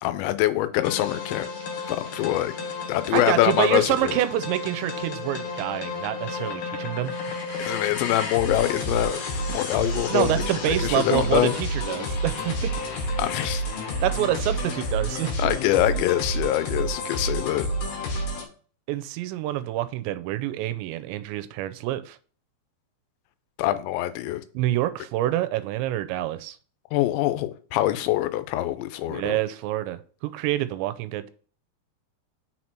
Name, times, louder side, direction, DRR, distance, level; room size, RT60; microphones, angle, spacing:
voice 1, 0.0-1.5 1.9-2.5 2.9-4.1 7.6-9.2 9.5-11.5 13.2-13.6 15.4-17.7 23.6-24.4 26.9-29.4, left 14 dB, 90° left, 2.9 m, -24 dB
sound 1, 0.8-18.4, left 1 dB, 60° left, 2.6 m, -30 dB
voice 2, 3.1-7.7 10.1-12.7 14.0-15.3 18.9-22.2 24.5-26.6 29.1-31.3, right 14 dB, 90° right, 2.9 m, -27 dB
6.4 x 4.3 x 4.4 m
omnidirectional pair, 5.1 m